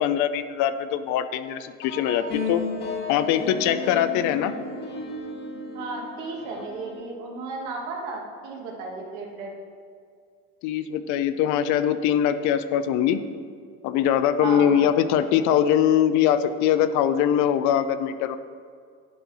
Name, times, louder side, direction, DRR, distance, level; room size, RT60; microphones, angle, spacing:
voice 1, 0.0-2.6 3.1-4.5 10.6-13.2 13.8-18.4, left 9 dB, 70° left, 12 dB, 0.5 m, -22 dB
sound 1, 1.8-7.0, left 3 dB, 35° left, 1.0 m, -34 dB
voice 2, 5.7-9.5 14.4-14.9, right 3 dB, 75° right, 0 dB, 1.6 m, -34 dB
10.5 x 4.5 x 4.1 m, 2.1 s
supercardioid pair, 105°, 30 cm